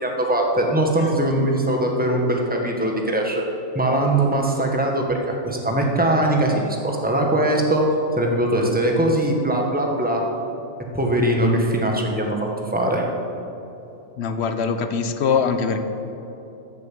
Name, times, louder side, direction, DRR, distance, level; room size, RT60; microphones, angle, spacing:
voice 1, 0.0-3.4 3.7-10.2 10.9-13.1, right 1 dB, 5° right, 0 dB, 1.4 m, -21 dB
voice 2, 14.2-15.8, left 6 dB, 55° left, 9 dB, 1.1 m, -22 dB
13.5 x 7.4 x 7.6 m, 3.0 s
omnidirectional pair, 1.4 m